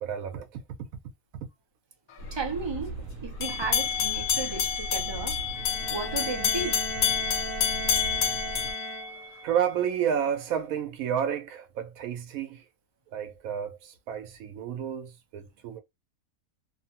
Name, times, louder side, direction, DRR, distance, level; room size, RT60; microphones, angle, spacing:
voice 1, 0.0-0.6 9.4-12.6 13.1-15.8, right 8 dB, 90° right, 1.0 m, -30 dB
sound 1, 2.2-8.7, right 1 dB, 70° right, 0.9 m, -39 dB
voice 2, 2.3-5.4 5.9-6.8, right 4 dB, 40° right, 0.3 m, -34 dB
sound 2, 3.4-9.6, left 8 dB, 75° left, 1.1 m, -28 dB
Bowed string instrument, 5.5-9.5, equal, 35° left, 0.7 m, -38 dB
3.0 x 2.1 x 2.8 m
omnidirectional pair, 1.4 m